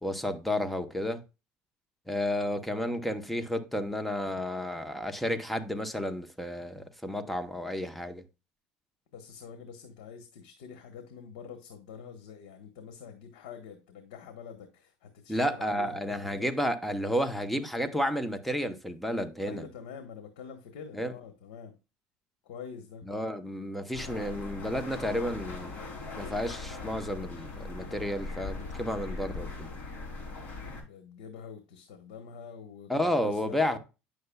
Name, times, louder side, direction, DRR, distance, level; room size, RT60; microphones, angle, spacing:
voice 1, 0.0-1.2 2.1-8.2 15.3-19.6 20.9-21.1 23.1-25.7 26.1-29.7 32.9-33.8, left 1 dB, 5° left, 0.9 m, -31 dB
voice 2, 9.1-16.5 19.4-21.8 22.4-23.1 30.8-33.8, left 7 dB, 90° left, 1.2 m, -46 dB
sound 1, 23.9-30.8, left 3 dB, 40° left, 3.2 m, -40 dB
9.3 x 6.7 x 2.3 m
cardioid pair, 120°, 5 cm